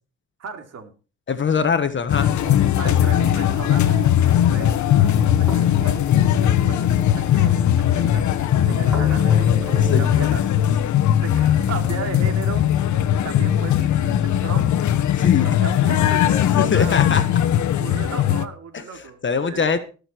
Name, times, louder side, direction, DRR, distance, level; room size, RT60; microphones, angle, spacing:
voice 1, 0.4-0.9 2.7-6.1 6.4-10.7 11.2-14.7 15.2-17.1 17.8-19.7, right 5 dB, 55° right, 5 dB, 3.0 m, -36 dB
voice 2, 1.3-2.3 2.8-3.1 9.9-10.1 15.2-15.5 16.6-17.2 19.2-19.8, left 6 dB, 40° left, 9 dB, 1.4 m, -22 dB
sound 1, 2.1-18.4, left 10 dB, 70° left, 1.2 m, -19 dB
sound 2, 2.4-10.0, right 2 dB, 5° right, 6.6 m, -37 dB
19.5 x 6.7 x 4.6 m, 0.36 s
cardioid pair, 90°, 30 cm